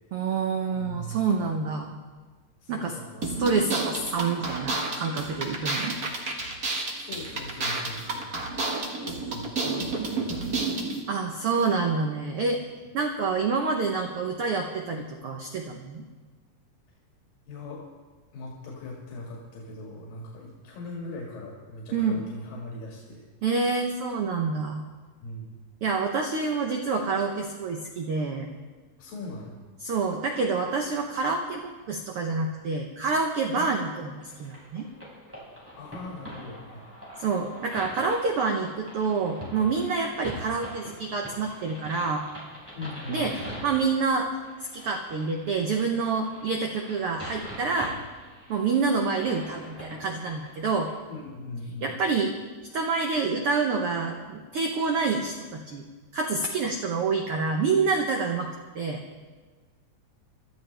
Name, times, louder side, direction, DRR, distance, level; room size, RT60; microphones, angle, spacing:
voice 1, 0.1-1.9 2.7-3.0 3.2-6.0 11.1-12.6 12.9-16.0 21.9-22.2 23.4-24.8 25.8-28.5 29.8-34.9 37.2-42.2 43.1-44.3 44.7-47.9 48.5-50.9 51.8-52.3 52.7-55.8 56.1-58.5 58.7-59.0, right 4 dB, 80° right, 3 dB, 1.2 m, -27 dB
voice 2, 0.7-1.5 2.6-3.4 7.0-8.3 9.3-10.8 17.5-17.8 18.3-23.3 25.2-25.6 29.0-29.6 33.5-33.7 35.8-36.9 42.8-43.3 51.1-52.0, left 2 dB, 85° left, -3 dB, 3.7 m, -40 dB
sound 1, 3.2-11.0, right 3 dB, 40° right, 1.3 m, -31 dB
sound 2, 34.2-50.9, equal, 5° right, 4.8 m, -43 dB
23.0 x 13.5 x 3.4 m, 1.4 s
omnidirectional pair, 3.9 m